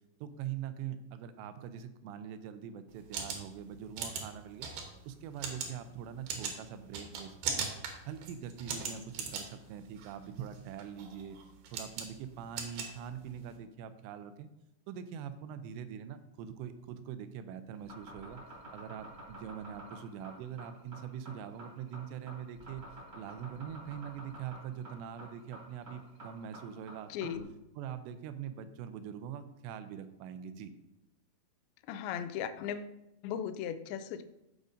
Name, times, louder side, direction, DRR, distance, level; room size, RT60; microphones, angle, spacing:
voice 1, 0.2-4.7 5.1-7.7 8.1-11.4 11.7-14.5 14.9-18.4 18.7-22.8 23.1-27.3 27.8-30.7, right 8 dB, 90° right, 10 dB, 2.8 m, -43 dB
sound 1, 2.9-13.6, right 5 dB, 70° right, 2.8 m, -40 dB
sound 2, 17.8-27.4, right 1 dB, 45° right, 1.5 m, -49 dB
voice 2, 27.1-27.6 31.9-33.0 33.2-34.2, left 8 dB, 85° left, 10 dB, 2.1 m, -37 dB
14.5 x 5.0 x 2.6 m, 0.90 s
omnidirectional pair, 4.9 m